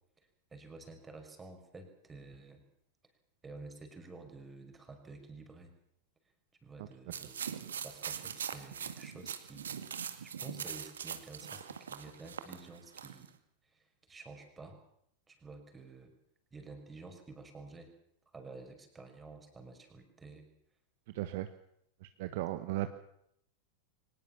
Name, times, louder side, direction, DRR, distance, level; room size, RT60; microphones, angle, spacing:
voice 1, 0.2-2.6 3.4-5.7 6.6-7.3 7.8-13.3 13.6-14.8 15.3-16.1 16.5-17.9 18.3-20.5, right 3 dB, 15° right, 6 dB, 5.4 m, -51 dB
sound 1, 7.1-13.3, right 8 dB, 65° right, 2.0 m, -42 dB
voice 2, 21.1-21.5 22.0-22.9, right 16 dB, 50° right, 9 dB, 1.4 m, -36 dB
24.0 x 19.5 x 7.2 m, 0.72 s
figure-of-eight pair, 90°, 0 cm